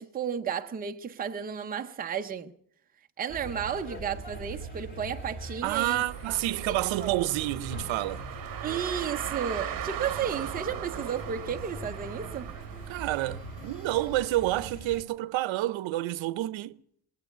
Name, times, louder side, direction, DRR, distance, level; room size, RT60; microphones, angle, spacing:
voice 1, 0.0-2.5 3.2-6.1 6.7-7.1 8.6-12.5, right 7 dB, 20° right, 0.5 m, -33 dB
sound 1, 3.3-15.0, right 2 dB, 25° left, 2.4 m, -42 dB
voice 2, 5.6-8.3 12.9-16.8, right 15 dB, 85° right, 0.7 m, -29 dB
Car, 5.8-14.3, right 10 dB, 50° right, 0.9 m, -39 dB
21.0 x 8.2 x 7.9 m
cardioid pair, 170°, 45 cm